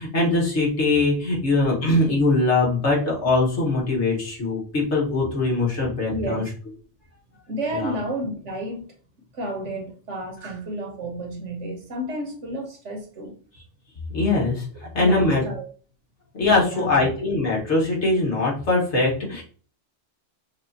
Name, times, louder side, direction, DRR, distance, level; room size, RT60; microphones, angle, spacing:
voice 1, 0.0-6.5 7.7-8.0 14.1-15.4 16.3-19.4, left 2 dB, 75° left, -4 dB, 1.8 m, -22 dB
voice 2, 6.1-6.4 7.3-8.8 9.3-13.4 15.0-15.7 16.4-17.0, right 1 dB, 80° right, 2 dB, 1.5 m, -31 dB
6.3 x 2.5 x 2.8 m, 0.42 s
omnidirectional pair, 1.2 m